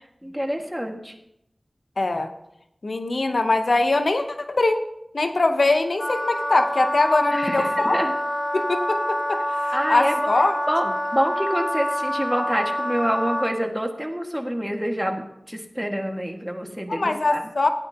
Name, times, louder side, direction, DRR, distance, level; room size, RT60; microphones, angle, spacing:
voice 1, 0.2-1.1 7.3-8.1 9.7-10.2 10.7-10.9 11.1-17.5, equal, 5° right, 2 dB, 1.8 m, -27 dB
voice 2, 2.0-2.3 2.8-4.8 5.1-8.0 8.5-10.6 16.9-17.7, left 2 dB, 75° left, 6 dB, 0.8 m, -22 dB
Wind instrument woodwind instrument, 6.0-13.5, equal, 55° left, 1.8 m, -26 dB
17.0 x 9.6 x 2.9 m, 0.81 s
wide cardioid pair, 40°, 0 cm